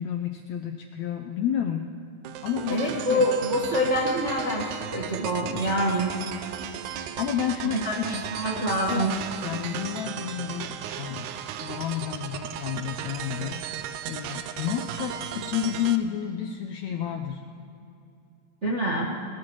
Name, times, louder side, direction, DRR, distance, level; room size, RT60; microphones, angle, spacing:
voice 1, 0.0-1.9 2.4-3.3 7.2-9.1 9.4-11.3 11.6-13.6 14.1-17.4, left 9 dB, 80° left, 5 dB, 1.6 m, -31 dB
sound 1, 2.2-16.0, right 9 dB, 80° right, 2.1 m, -36 dB
voice 2, 2.7-6.5 7.8-9.1 18.6-19.1, equal, 45° right, -4 dB, 0.9 m, -26 dB
20.5 x 19.5 x 3.1 m, 2.7 s
omnidirectional pair, 3.8 m